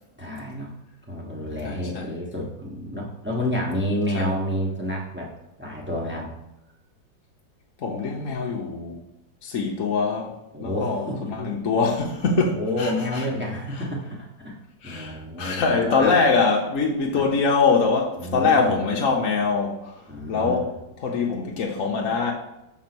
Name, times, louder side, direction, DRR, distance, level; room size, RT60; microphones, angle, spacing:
voice 1, 0.2-0.7 1.1-5.3 5.6-6.3 10.5-11.3 12.5-14.6 14.8-16.2 17.1-17.3 18.2-18.8 20.1-20.7, left 1 dB, 5° right, 1.0 m, -29 dB
voice 2, 1.6-2.2 4.1-4.4 7.8-9.0 9.4-13.2 14.8-20.0 20.3-22.3, left 4 dB, 55° left, 1.0 m, -23 dB
6.3 x 3.7 x 6.0 m
omnidirectional pair, 2.0 m